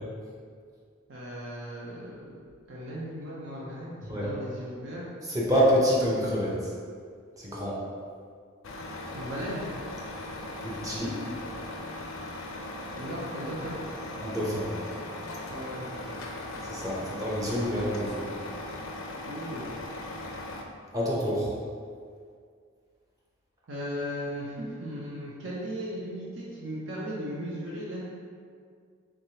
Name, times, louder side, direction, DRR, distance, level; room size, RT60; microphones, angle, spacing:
voice 1, 1.1-5.0 9.1-9.6 12.9-13.8 15.5-16.2 19.3-19.7 23.7-28.0, equal, 65° right, -6 dB, 0.6 m, -37 dB
voice 2, 5.3-6.6 7.4-7.8 10.6-11.2 14.2-14.7 16.7-18.3 20.9-21.5, equal, 15° right, -6 dB, 0.7 m, -27 dB
Truck, 8.6-20.6, left 2 dB, 80° left, 0.4 m, -39 dB
3.5 x 3.3 x 2.8 m, 2.1 s
head